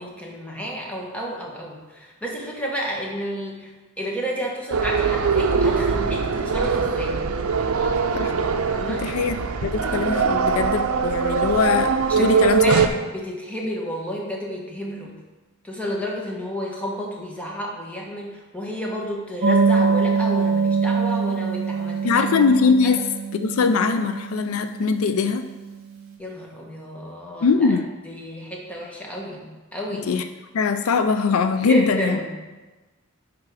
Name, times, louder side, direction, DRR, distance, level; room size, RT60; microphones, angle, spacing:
voice 1, 0.0-7.2 8.7-9.1 12.1-15.2 15.6-22.3 22.8-22.9 26.2-27.8 28.0-30.1 31.7-32.4, equal, 5° left, -3 dB, 1.3 m, -31 dB
sound 1, 4.7-12.9, right 5 dB, 80° right, 0.5 m, -22 dB
voice 2, 8.9-12.8 22.0-25.5 27.4-27.9 29.9-30.3 30.5-32.2, left 5 dB, 75° left, 9 dB, 0.4 m, -21 dB
sound 2, 19.4-25.6, right 5 dB, 50° right, 1.6 m, -24 dB
10.5 x 3.6 x 4.8 m, 1.2 s
head